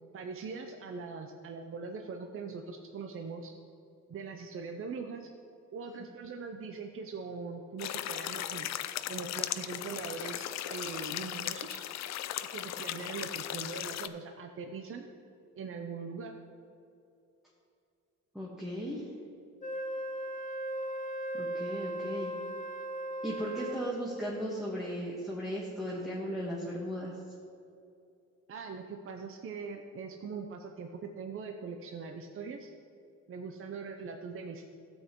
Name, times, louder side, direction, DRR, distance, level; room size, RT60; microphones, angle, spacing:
voice 1, 0.1-3.5 4.1-5.3 5.7-8.8 9.1-11.8 12.5-15.1 15.6-16.3 28.5-32.7 33.3-34.7, right 5 dB, 45° right, 4 dB, 0.7 m, -41 dB
sound 1, 7.8-14.1, left 12 dB, 60° left, 0.5 m, -37 dB
voice 2, 18.3-19.1 21.3-22.3 23.2-27.2, equal, ahead, -5 dB, 1.4 m, -36 dB
Wind instrument woodwind instrument, 19.6-24.0, right 1 dB, 25° left, 0.8 m, -37 dB
12.5 x 8.0 x 3.1 m, 2.5 s
cardioid pair, 90°, 30 cm